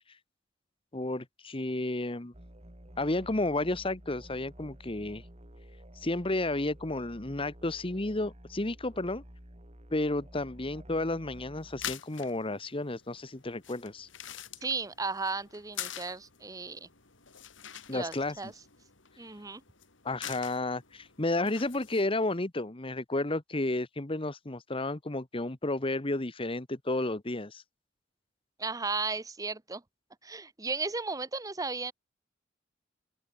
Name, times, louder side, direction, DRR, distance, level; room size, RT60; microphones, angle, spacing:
voice 1, 0.9-2.3 3.0-5.2 6.0-9.2 9.9-14.1 17.9-18.3 20.0-27.6, left 2 dB, 30° left, 1.3 m, -32 dB
sound 1, 2.3-12.0, right 1 dB, 35° right, 2.8 m, -51 dB
sound 2, 11.6-22.4, left 10 dB, 80° left, 4.9 m, -46 dB
voice 2, 14.6-16.9 17.9-18.5 19.2-19.6 28.6-29.8 30.2-31.9, right 4 dB, 20° right, 0.9 m, -35 dB
open air
head